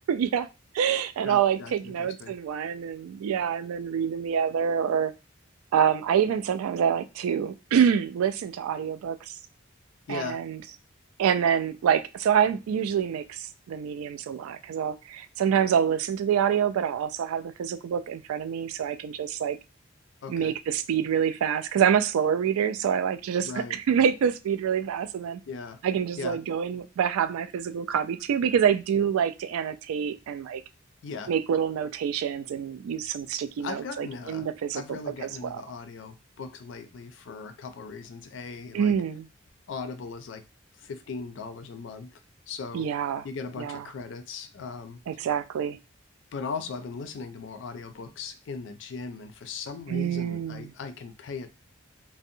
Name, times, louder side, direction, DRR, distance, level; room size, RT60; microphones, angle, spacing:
voice 1, 0.1-0.5 0.7-5.1 5.7-9.3 10.1-10.6 11.2-19.6 20.3-25.4 25.8-30.6 31.3-35.6 38.7-39.3 42.7-43.3 43.6-43.8 45.1-45.8 49.9-50.7, right 8 dB, 90° right, 14 dB, 0.3 m, -26 dB
voice 2, 1.2-2.3 10.1-10.4 20.2-20.5 23.4-23.8 25.5-25.8 26.2-26.4 31.0-31.3 33.6-34.5 34.7-38.9 39.7-40.4 40.8-42.2 42.5-42.9 43.2-45.0 46.3-51.5, left 4 dB, 60° left, 9 dB, 0.4 m, -38 dB
2.6 x 2.0 x 2.6 m, 0.27 s
head